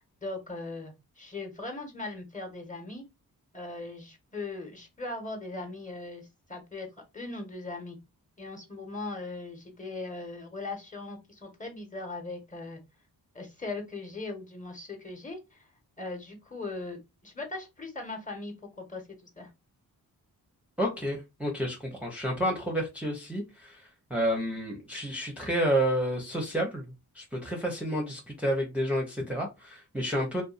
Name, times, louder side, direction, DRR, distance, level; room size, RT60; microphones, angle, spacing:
voice 1, 0.2-3.0 3.5-6.9 7.1-8.0 8.4-12.8 13.3-15.7 16.0-19.0 19.4-19.5, left 3 dB, 20° left, 1.2 m, -39 dB
voice 2, 20.8-26.8 27.1-30.4, equal, 5° right, 0.8 m, -30 dB
2.6 x 2.3 x 2.5 m
cardioid pair, 45°, 39 cm